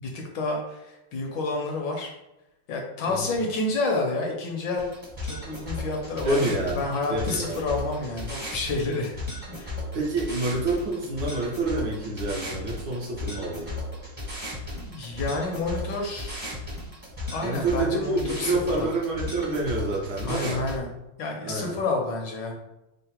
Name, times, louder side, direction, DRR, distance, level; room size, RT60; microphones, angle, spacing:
voice 1, 0.0-2.1 2.7-4.9 5.2-9.1 9.5-9.8 14.7-16.5 17.3-18.9 20.2-20.9 21.2-22.5, left 3 dB, 70° left, 0 dB, 1.2 m, -29 dB
sound 1, 4.8-20.8, left 2 dB, 25° right, 0.5 m, -35 dB
voice 2, 6.2-6.8 7.1-7.6 9.9-13.7 17.4-20.6 21.4-21.8, right 2 dB, 65° right, -2 dB, 1.2 m, -28 dB
3.8 x 2.0 x 4.2 m, 0.93 s
omnidirectional pair, 2.3 m